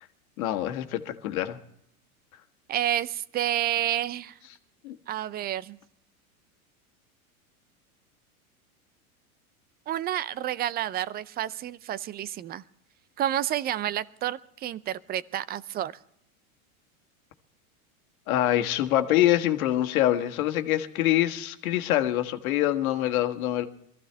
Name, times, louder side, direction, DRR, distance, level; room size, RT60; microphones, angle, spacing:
voice 1, 0.4-1.6 4.8-5.0 18.3-23.7, left 13 dB, 70° left, 6 dB, 1.6 m, -25 dB
voice 2, 2.7-4.4 5.1-5.8 9.9-12.6 13.2-15.9, right 12 dB, 20° right, 17 dB, 0.5 m, -30 dB
23.0 x 14.5 x 3.4 m, 0.70 s
hypercardioid pair, 115°, 44 cm